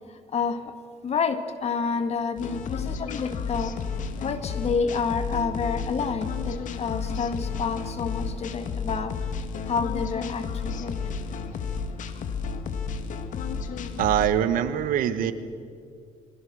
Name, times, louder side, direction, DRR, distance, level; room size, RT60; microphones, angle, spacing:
voice 1, 0.1-0.7 1.0-3.8 4.2-9.2 9.7-11.0 12.1-12.4, left 5 dB, 50° left, 8 dB, 2.1 m, -29 dB
sound 1, 2.4-14.3, left 5 dB, 65° left, 1.9 m, -32 dB
voice 2, 14.0-15.3, right 10 dB, 80° right, 12 dB, 1.4 m, -23 dB
27.0 x 22.5 x 6.4 m, 2.4 s
cardioid pair, 100°, 14 cm